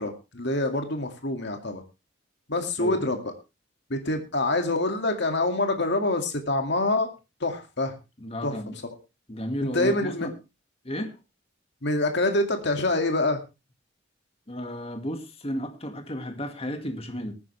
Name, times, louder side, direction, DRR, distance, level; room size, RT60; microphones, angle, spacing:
voice 1, 0.0-1.8 2.5-3.3 3.9-7.1 7.4-7.9 8.4-8.6 9.7-10.3 11.8-13.4, left 2 dB, 55° left, 2.2 m, -26 dB
voice 2, 8.2-8.8 9.3-10.3 10.8-11.2 14.5-17.3, equal, 30° left, 2.0 m, -33 dB
19.5 x 9.6 x 3.3 m
head